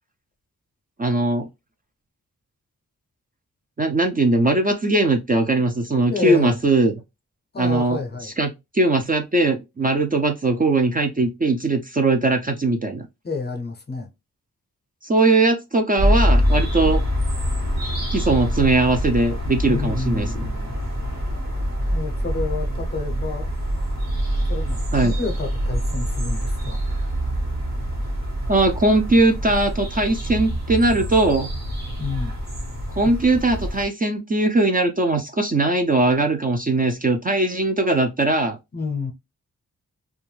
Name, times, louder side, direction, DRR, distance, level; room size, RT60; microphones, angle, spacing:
voice 1, 1.0-1.5 3.8-6.9 7.6-13.1 15.0-17.0 18.1-20.5 24.9-25.1 28.5-31.5 33.0-38.6, right 2 dB, 25° right, 0.4 m, -20 dB
voice 2, 6.1-6.6 7.5-8.3 13.2-14.1 19.6-20.8 21.9-23.5 24.5-26.8 32.0-32.4 33.0-33.1 38.7-39.1, left 4 dB, 30° left, 0.5 m, -29 dB
sound 1, 16.0-33.9, equal, 55° right, 1.1 m, -25 dB
2.5 x 2.3 x 3.1 m
wide cardioid pair, 125°, 33 cm